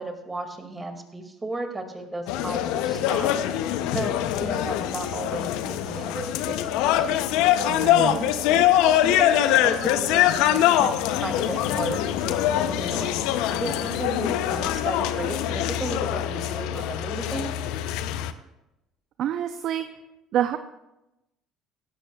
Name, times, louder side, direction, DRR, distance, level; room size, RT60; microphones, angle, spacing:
voice 1, 0.0-3.3 3.9-7.2 8.0-8.3 9.0-13.1 13.5-17.5, right 2 dB, 20° right, 5 dB, 2.2 m, -34 dB
sound 1, 2.3-18.3, left 11 dB, 75° left, 0.6 m, -23 dB
voice 2, 7.7-8.2 19.2-19.9 20.3-20.6, right 10 dB, 60° right, 9 dB, 0.5 m, -27 dB
sound 2, 14.6-16.9 17.3-17.6, equal, 10° left, 4.8 m, -48 dB
16.0 x 12.5 x 2.3 m, 0.96 s
hypercardioid pair, 65°, 0 cm